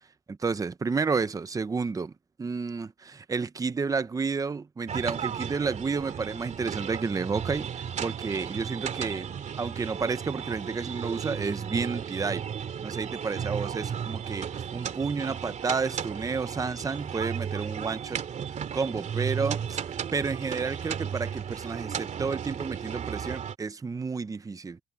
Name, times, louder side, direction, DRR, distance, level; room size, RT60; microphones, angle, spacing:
voice 1, 0.3-2.1 2.4-9.3 9.6-12.4 12.8-18.2 18.7-24.8, right 4 dB, 20° right, 0.9 m, -31 dB
sound 1, 4.9-23.6, right 8 dB, 45° right, 2.6 m, -34 dB
cardioid pair, 110°, 17 cm